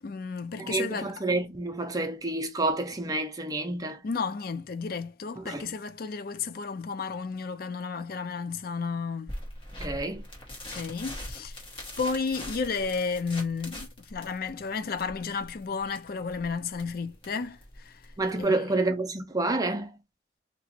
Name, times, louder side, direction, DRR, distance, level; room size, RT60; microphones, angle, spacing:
voice 1, 0.0-1.1 4.0-9.3 10.7-11.6 12.0-18.1 18.4-18.8, left 5 dB, 50° left, 0.4 m, -32 dB
voice 2, 0.6-4.0 5.4-5.6 9.8-10.2 18.2-19.9, right 2 dB, 20° right, 0.6 m, -29 dB
sound 1, 9.3-18.4, left 1 dB, 30° left, 1.2 m, -42 dB
2.9 x 2.5 x 4.3 m
head